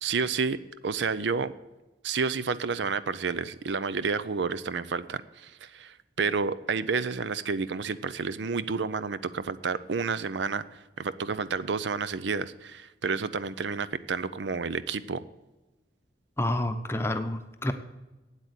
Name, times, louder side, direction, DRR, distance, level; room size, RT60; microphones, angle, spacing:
voice 1, 0.0-0.6 0.8-1.5 2.0-10.6 11.0-15.2, right 5 dB, 80° right, 15 dB, 0.5 m, -30 dB
voice 2, 16.4-17.7, left 1 dB, 15° left, 7 dB, 0.7 m, -29 dB
8.9 x 8.3 x 8.2 m, 1.1 s
head